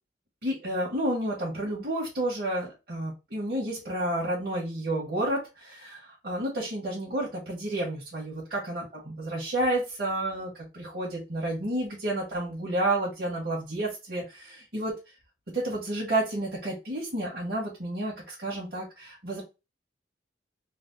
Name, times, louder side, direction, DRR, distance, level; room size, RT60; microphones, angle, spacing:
voice 1, 0.4-14.9 15.5-19.4, right 1 dB, 50° right, -5 dB, 1.1 m, -30 dB
3.3 x 2.0 x 3.7 m, 0.27 s
head